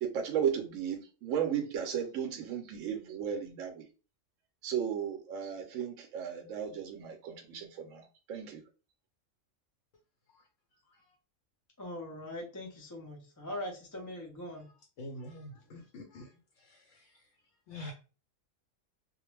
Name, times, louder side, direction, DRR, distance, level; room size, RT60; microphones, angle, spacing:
voice 1, 0.0-3.9 4.6-8.6, right 8 dB, 80° right, 4 dB, 0.9 m, -35 dB
voice 2, 11.8-14.7 15.5-15.6, left 1 dB, 30° left, 0 dB, 0.3 m, -41 dB
voice 3, 15.0-16.3 16.7-17.0 17.7-17.9, left 1 dB, 70° left, 2 dB, 0.9 m, -45 dB
2.4 x 2.1 x 3.1 m, 0.34 s
omnidirectional pair, 1.3 m